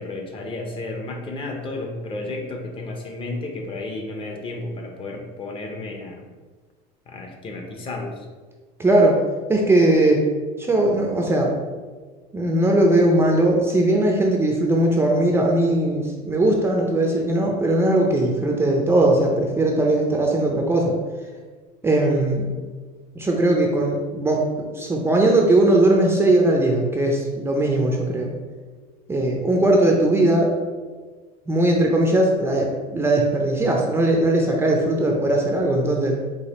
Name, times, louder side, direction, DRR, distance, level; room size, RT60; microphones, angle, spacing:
voice 1, 0.0-6.2 7.1-8.3, left 2 dB, 30° left, 2 dB, 0.6 m, -32 dB
voice 2, 8.8-9.2 9.5-10.2 10.6-11.6 12.3-21.0 21.8-22.5 23.2-28.3 29.1-30.5 31.5-36.2, right 1 dB, 15° right, 0 dB, 0.5 m, -19 dB
4.8 x 2.5 x 4.1 m, 1.4 s
cardioid pair, 140°, 19 cm